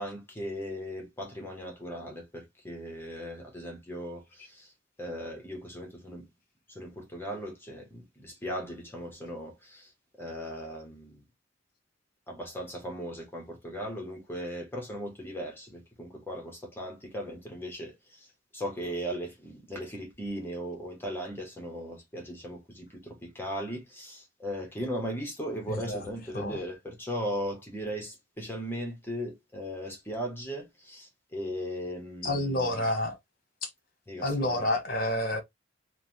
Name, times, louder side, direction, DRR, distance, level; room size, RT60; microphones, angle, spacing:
voice 1, 0.0-4.7 5.0-6.3 6.7-9.9 10.2-11.2 12.3-18.3 18.5-32.8 34.1-34.7, equal, 10° left, 0.8 m, -38 dB
voice 2, 25.7-26.0 26.3-26.6 32.2-33.2 33.6-33.7 34.2-35.4, left 1 dB, 50° left, 0.8 m, -29 dB
3.1 x 2.0 x 2.6 m
head